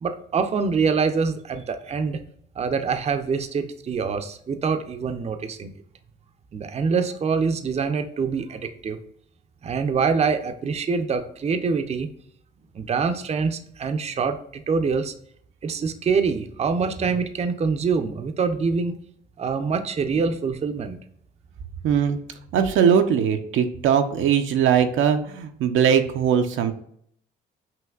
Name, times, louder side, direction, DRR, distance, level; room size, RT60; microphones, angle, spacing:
voice 1, 0.0-2.2 2.6-5.7 6.5-9.0 9.6-12.1 12.7-15.1 15.6-19.0 19.4-21.0, right 5 dB, 35° right, 8 dB, 0.5 m, -25 dB
voice 2, 21.8-22.2 22.5-26.7, right 8 dB, 80° right, 6 dB, 0.6 m, -20 dB
5.8 x 2.8 x 2.3 m, 0.66 s
cardioid pair, 90°, 20 cm